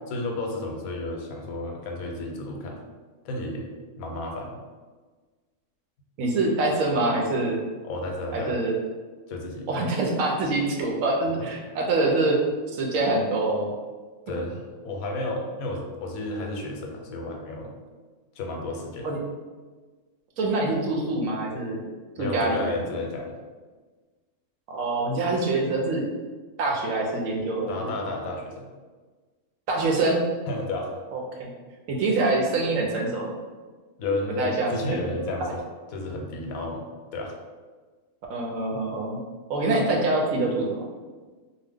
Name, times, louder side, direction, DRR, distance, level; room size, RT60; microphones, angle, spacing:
voice 1, 0.1-2.8 3.2-3.7 4.0-4.6 7.8-8.6 9.3-9.7 14.3-17.7 18.4-19.1 22.2-23.3 27.7-28.7 30.5-30.9 34.0-35.6 35.9-36.9 37.1-37.3, left 2 dB, 85° left, 1 dB, 1.0 m, -32 dB
voice 2, 6.2-7.6 8.3-8.8 9.7-12.4 12.7-13.7 19.0-19.2 20.4-21.8 22.2-22.7 24.7-26.1 26.6-27.9 29.7-30.2 31.1-31.5 31.9-33.3 34.4-34.8 38.3-39.2 39.5-40.8, right 2 dB, 75° right, 0 dB, 0.9 m, -25 dB
2.8 x 2.1 x 3.4 m, 1.4 s
omnidirectional pair, 1.5 m